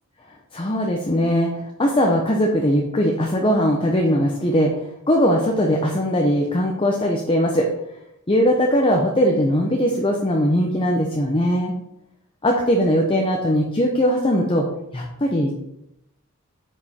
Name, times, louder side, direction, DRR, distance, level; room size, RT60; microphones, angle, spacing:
voice 1, 0.5-1.5 1.8-4.7 5.1-7.7 8.3-11.7 12.4-14.7 14.9-15.6, equal, 25° left, 0 dB, 0.8 m, -20 dB
9.6 x 5.2 x 4.3 m, 0.84 s
head